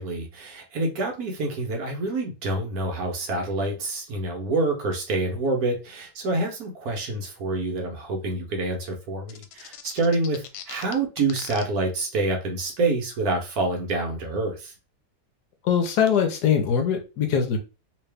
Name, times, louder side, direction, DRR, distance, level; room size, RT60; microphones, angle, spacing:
voice 1, 0.0-14.7, right 2 dB, 65° right, 1.3 m, -27 dB
sound 1, 9.3-11.6, left 10 dB, 90° left, 1.2 m, -39 dB
voice 2, 15.6-17.6, left 7 dB, 70° left, 1.2 m, -22 dB
3.0 x 3.0 x 3.3 m
omnidirectional pair, 1.9 m